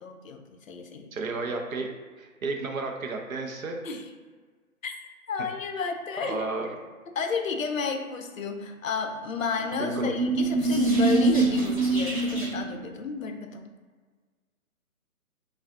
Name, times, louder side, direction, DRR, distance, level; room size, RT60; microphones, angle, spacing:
voice 1, 0.0-1.1 3.8-4.1 4.8-5.0 5.3-6.5 7.1-13.6, left 4 dB, 65° left, 5 dB, 0.6 m, -31 dB
voice 2, 1.1-1.9 2.2-3.8 6.2-6.7 9.7-10.1, right 3 dB, 70° right, 3 dB, 0.7 m, -32 dB
sound 1, 9.5-12.8, right 3 dB, 25° right, 0.7 m, -24 dB
5.1 x 2.4 x 2.5 m, 1.5 s
hypercardioid pair, 175°, 43 cm